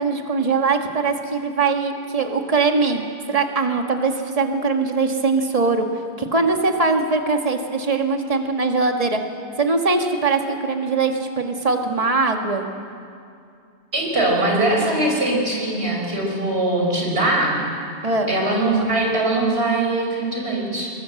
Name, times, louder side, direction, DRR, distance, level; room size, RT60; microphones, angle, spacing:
voice 1, 0.0-5.8 6.2-9.2 9.6-12.6 18.0-18.3, right 4 dB, 35° right, 4 dB, 1.7 m, -21 dB
voice 2, 13.9-17.6 18.3-20.9, right 2 dB, 70° right, -1 dB, 5.1 m, -21 dB
22.0 x 19.5 x 7.8 m, 2.4 s
omnidirectional pair, 1.1 m